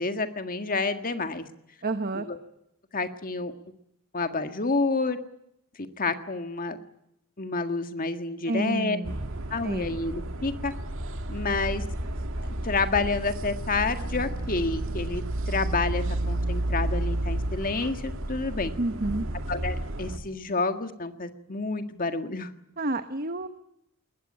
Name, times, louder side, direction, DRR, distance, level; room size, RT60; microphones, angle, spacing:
voice 1, 0.0-1.5 2.1-2.4 2.9-3.5 4.1-5.2 6.0-6.8 7.4-9.0 9.5-10.7 11.3-11.8 12.4-18.7 19.5-22.5, left 3 dB, 40° left, 8 dB, 1.8 m, -29 dB
voice 2, 1.8-2.2 8.5-9.1 9.6-10.0 18.8-19.3 22.8-23.5, right 2 dB, 40° right, 9 dB, 1.1 m, -29 dB
sound 1, 9.0-20.2, right 1 dB, 60° right, 2.0 m, -31 dB
21.0 x 20.0 x 9.9 m, 0.79 s
head